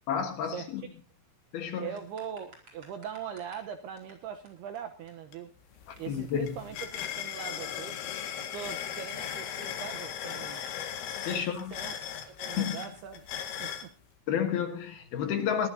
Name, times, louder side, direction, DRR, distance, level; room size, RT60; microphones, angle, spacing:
voice 1, 0.1-0.8 1.5-2.0 5.9-6.6 11.2-11.7 12.6-12.8 14.3-15.7, left 8 dB, 65° left, 2.8 m, -31 dB
voice 2, 1.8-5.5 6.0-8.0 8.4-10.6 11.3-11.5 11.7-12.0 12.4-13.9, right 8 dB, 75° right, 2.4 m, -41 dB
sound 1, 2.0-3.7 4.0-4.1 4.5-4.6 4.8-4.9 5.1-5.2 5.4-6.0 6.3-6.4 6.8-12.3 12.8-13.0, right 3 dB, 30° right, 5.0 m, -55 dB
sound 2, 5.3-5.4 5.7-13.9, left 9 dB, 90° left, 4.5 m, -38 dB
23.0 x 14.5 x 2.7 m
omnidirectional pair, 5.7 m